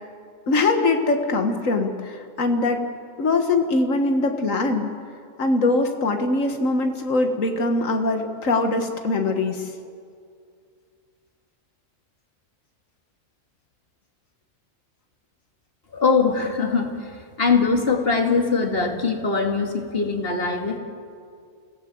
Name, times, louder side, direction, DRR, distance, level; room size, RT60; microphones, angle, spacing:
voice 1, 0.5-2.8 3.2-4.9 5.4-9.7, left 3 dB, 90° left, 5 dB, 1.9 m, -22 dB
voice 2, 15.9-17.1 17.4-20.8, left 4 dB, 50° left, 4 dB, 2.3 m, -22 dB
28.0 x 16.5 x 7.7 m, 2.2 s
omnidirectional pair, 1.3 m